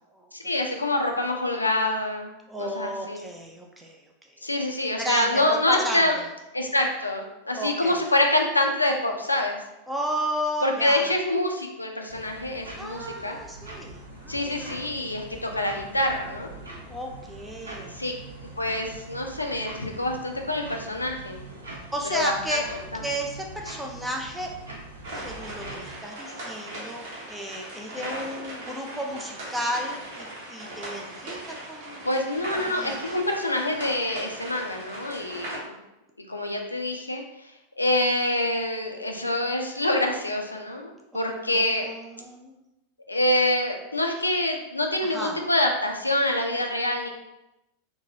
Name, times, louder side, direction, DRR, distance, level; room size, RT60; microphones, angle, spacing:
voice 1, 0.4-2.3 2.6-3.2 4.4-6.2 6.5-9.6 10.6-13.4 14.3-16.5 17.9-18.1 18.6-21.4 22.0-22.6 22.9-23.0 28.0-28.1 32.0-35.8 36.3-37.2 37.8-41.8 43.1-47.1, left 1 dB, 85° left, 3 dB, 0.3 m, -26 dB
voice 2, 2.5-4.0 5.0-6.0 7.5-8.0 9.9-11.1 12.8-14.8 16.9-18.0 21.9-22.6 23.0-24.5 25.1-32.0 32.6-33.0 41.5-42.6 45.0-45.4, equal, 5° right, 0 dB, 0.4 m, -33 dB
sound 1, 12.1-26.0, right 2 dB, 75° right, 0.6 m, -43 dB
sound 2, 25.0-35.6, right 1 dB, 55° right, 0.9 m, -39 dB
2.8 x 2.2 x 2.7 m, 0.93 s
figure-of-eight pair, 90°, 0 cm